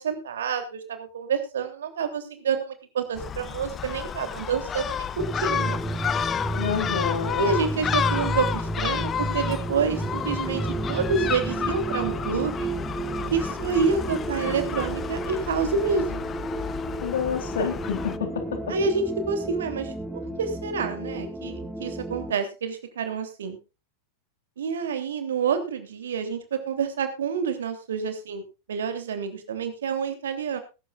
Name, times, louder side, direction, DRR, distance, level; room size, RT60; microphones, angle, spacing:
voice 1, 0.0-5.1 5.4-5.8 7.4-10.6 10.9-12.7 13.3-16.2 18.7-19.9 20.4-23.6 24.6-28.4 28.7-30.6, right 5 dB, 65° right, 7 dB, 3.1 m, -28 dB
Gull seagull, 3.2-18.2, left 8 dB, 25° left, 0.8 m, -31 dB
sound 1, 5.2-22.3, right 2 dB, 5° right, 1.3 m, -32 dB
voice 2, 6.5-7.5 17.0-18.7, left 6 dB, 60° left, 7 dB, 3.5 m, -28 dB
21.0 x 11.5 x 2.5 m, 0.30 s
figure-of-eight pair, 90°, 0 cm